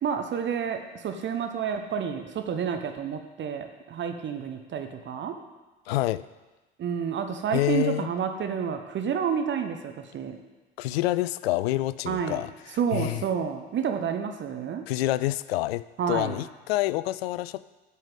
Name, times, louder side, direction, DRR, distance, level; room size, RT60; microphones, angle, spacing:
voice 1, 0.0-5.4 6.8-10.4 12.1-12.4 12.8-14.8 16.0-16.4, right 7 dB, 35° right, 6 dB, 1.0 m, -29 dB
voice 2, 5.9-6.3 7.5-8.1 10.8-13.2 14.9-17.6, left 16 dB, 65° left, 17 dB, 0.4 m, -27 dB
8.8 x 5.6 x 7.9 m, 1.2 s
figure-of-eight pair, 65°, 32 cm